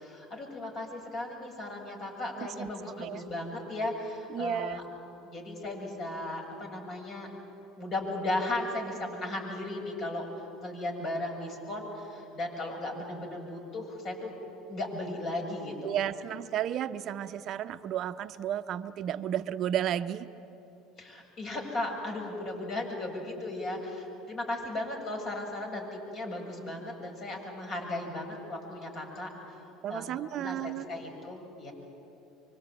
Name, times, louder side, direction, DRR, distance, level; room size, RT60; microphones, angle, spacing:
voice 1, 0.0-4.8 5.2-7.3 7.8-10.3 10.6-14.4 14.7-16.0 21.0-29.3 29.9-31.7, left 2 dB, 45° left, 1 dB, 7.6 m, -36 dB
voice 2, 2.4-2.7 3.0-3.2 4.3-4.8 15.8-20.3 29.8-30.9, right 11 dB, 50° right, 11 dB, 0.7 m, -33 dB
25.0 x 24.5 x 8.9 m, 2.9 s
hypercardioid pair, 75°, 0 cm